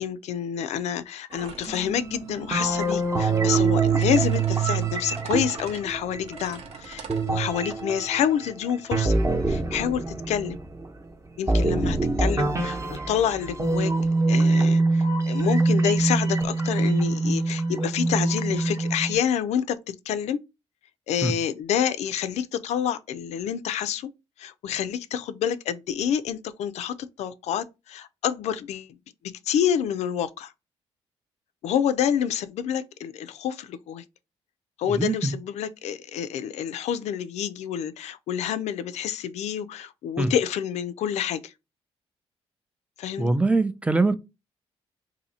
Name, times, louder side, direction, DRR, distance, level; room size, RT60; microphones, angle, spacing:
voice 1, 0.0-9.2 9.5-10.6 11.4-12.8 13.1-13.9 14.3-20.4 21.1-24.1 24.4-28.9 29.5-30.5 31.6-34.0 34.8-41.5 43.0-43.3, left 9 dB, 80° left, 0.4 m, -28 dB
sound 1, 1.3-7.8, right 6 dB, 70° right, 0.9 m, -42 dB
sound 2, 1.7-6.4 7.1-10.8 11.5-19.2, right 3 dB, 25° right, 0.9 m, -24 dB
voice 2, 34.8-35.3 40.2-40.3 43.2-44.2, right 3 dB, 10° right, 0.5 m, -23 dB
2.8 x 2.7 x 4.1 m
cardioid pair, 90°, 11 cm